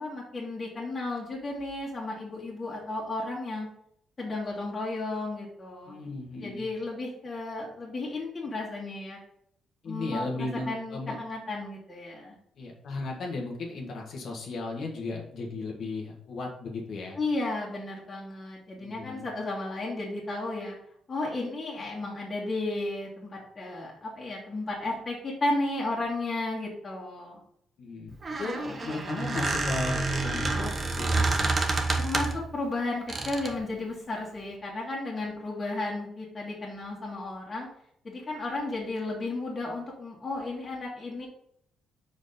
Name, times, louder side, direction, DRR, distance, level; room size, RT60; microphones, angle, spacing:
voice 1, 0.0-3.7 4.2-5.9 6.4-9.2 9.9-12.4 17.2-20.8 21.1-27.4 32.0-37.7 38.0-41.3, left 2 dB, 30° left, -4 dB, 1.9 m, -33 dB
voice 2, 5.9-6.6 9.8-11.2 12.5-17.2 18.8-19.3 27.8-31.5, left 3 dB, 65° left, -1 dB, 1.4 m, -35 dB
Squeak, 28.1-32.5 33.1-33.6, right 3 dB, 35° right, 1.1 m, -28 dB
5.1 x 4.5 x 5.1 m, 0.70 s
cardioid pair, 90°, 0 cm